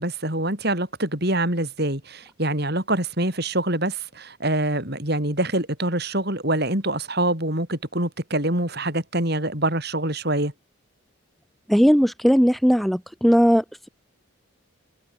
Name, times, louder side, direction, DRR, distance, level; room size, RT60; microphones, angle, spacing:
voice 1, 0.0-10.5, right 1 dB, 50° right, 7.9 m, -25 dB
voice 2, 11.7-13.9, equal, ahead, 2.9 m, -18 dB
head